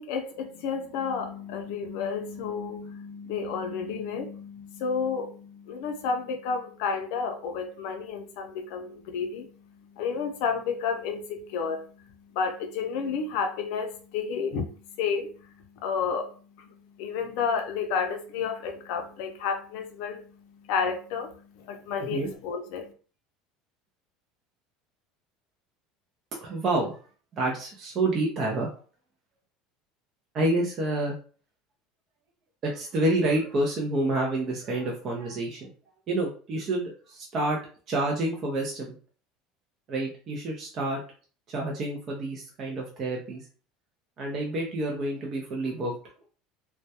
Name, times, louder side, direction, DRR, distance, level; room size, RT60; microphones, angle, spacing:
voice 1, 0.0-9.5 9.9-11.8 12.3-14.7 15.0-15.3 15.8-16.7 17.0-20.4 20.6-22.9, left 6 dB, 70° left, 0.5 m, -31 dB
voice 2, 26.4-27.0 27.3-28.7 30.3-31.2 32.6-35.7 36.1-37.6 37.9-39.0 39.9-41.0 41.5-43.5 44.2-45.9, right 2 dB, 40° right, 0.5 m, -28 dB
2.2 x 2.1 x 2.7 m
supercardioid pair, 140°, 0 cm